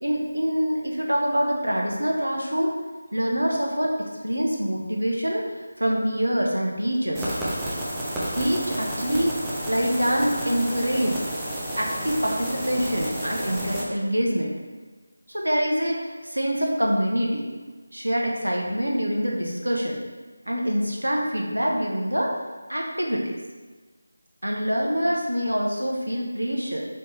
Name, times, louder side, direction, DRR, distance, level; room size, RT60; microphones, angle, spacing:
voice 1, 0.0-2.7 3.1-5.4 5.8-7.3 8.3-9.4 9.7-11.2 11.8-14.5 15.3-17.5 17.9-20.0 20.5-22.3 22.7-23.4 24.4-26.8, equal, 80° right, -1 dB, 0.8 m, -25 dB
sound 1, 7.1-13.8, right 1 dB, 5° right, 0.4 m, -31 dB
4.4 x 3.0 x 3.1 m, 1.4 s
figure-of-eight pair, 165°, 0 cm